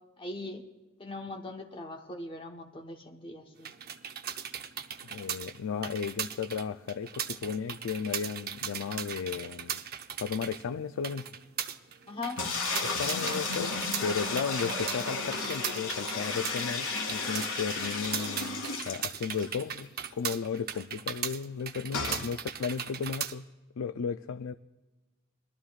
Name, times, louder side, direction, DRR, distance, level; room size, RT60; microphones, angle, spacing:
voice 1, 0.2-0.6 1.0-3.7 12.1-12.4, left 2 dB, 25° left, 2 dB, 1.1 m, -40 dB
sound 1, 3.6-23.3, right 8 dB, 45° right, 0.7 m, -38 dB
voice 2, 5.1-9.8 10.2-11.3 12.8-23.4 23.8-24.5, left 6 dB, 65° left, 10 dB, 0.4 m, -35 dB
sound 2, 12.4-19.5 19.9-20.0 20.2-20.3 21.9-22.3, left 3 dB, 90° left, 2.4 m, -33 dB
21.5 x 13.0 x 2.4 m, 1.1 s
head